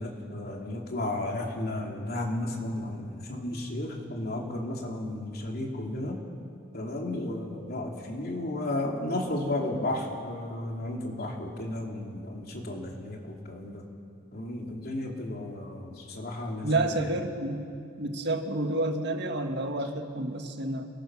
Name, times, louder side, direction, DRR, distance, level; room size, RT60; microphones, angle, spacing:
voice 1, 0.0-6.2 6.7-13.8 14.3-17.1, left 1 dB, 55° left, 0 dB, 3.0 m, -33 dB
voice 2, 16.6-17.7 18.0-20.9, right 2 dB, 60° right, 5 dB, 1.7 m, -29 dB
28.0 x 20.0 x 6.2 m, 2.4 s
head